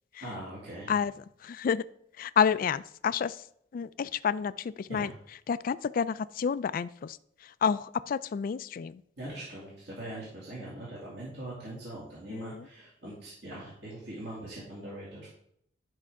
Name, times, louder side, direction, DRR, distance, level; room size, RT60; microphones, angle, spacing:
voice 1, 0.2-0.9 4.9-5.2 9.2-15.3, right 1 dB, 65° right, -6 dB, 2.3 m, -41 dB
voice 2, 1.4-1.8 2.2-3.4 3.7-5.1 5.5-7.2 7.4-9.0 12.3-12.7, left 7 dB, 50° left, 17 dB, 0.3 m, -29 dB
10.5 x 5.5 x 3.6 m, 0.71 s
head